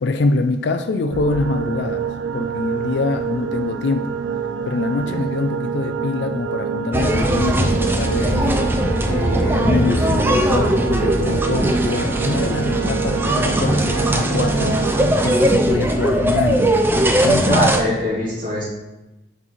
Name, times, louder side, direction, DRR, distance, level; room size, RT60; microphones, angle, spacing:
voice 1, 0.0-2.1 2.3-4.2 4.6-8.7 9.1-16.7 17.2-18.0, left 3 dB, 65° left, 7 dB, 0.4 m, -24 dB
sound 1, 1.1-15.6, right 7 dB, 85° right, 0.3 m, -27 dB
sound 2, 6.9-17.8, right 1 dB, 10° right, 0.4 m, -19 dB
voice 2, 17.5-18.6, equal, 45° right, -7 dB, 2.3 m, -22 dB
9.4 x 4.0 x 3.0 m, 1.0 s
head